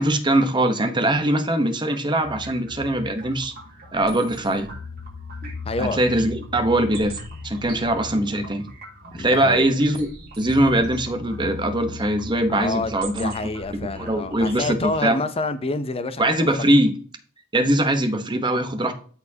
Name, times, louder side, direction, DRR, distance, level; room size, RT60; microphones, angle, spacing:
voice 1, 0.0-3.5 3.9-4.7 5.8-8.7 9.1-10.1 10.4-13.3 14.0-15.2 16.2-16.9 17.5-18.9, right 1 dB, 20° right, 1.0 m, -21 dB
sound 1, 2.2-14.9, left 2 dB, 45° right, 3.1 m, -38 dB
voice 2, 5.7-6.0 9.1-9.7 12.5-16.6, left 3 dB, 25° left, 0.6 m, -28 dB
13.0 x 4.4 x 2.8 m
head